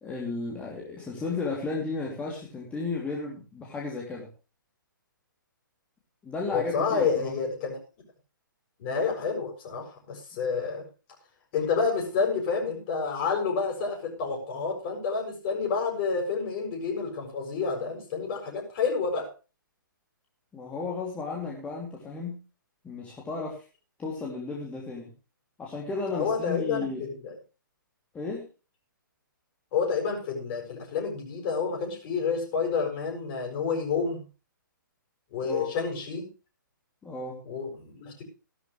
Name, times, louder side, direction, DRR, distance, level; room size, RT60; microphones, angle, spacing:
voice 1, 0.0-4.3 6.2-7.3 20.5-22.4 22.8-23.6 24.0-25.1 25.6-27.0 28.1-28.5 35.4-35.7 37.0-37.4, left 3 dB, 10° left, -2 dB, 2.9 m, -34 dB
voice 2, 6.5-7.8 8.8-10.9 11.5-19.3 26.1-27.3 29.7-34.2 35.3-36.3 37.4-38.2, left 5 dB, 35° left, 1 dB, 7.2 m, -29 dB
16.5 x 13.0 x 3.3 m, 0.33 s
figure-of-eight pair, 125°, 11 cm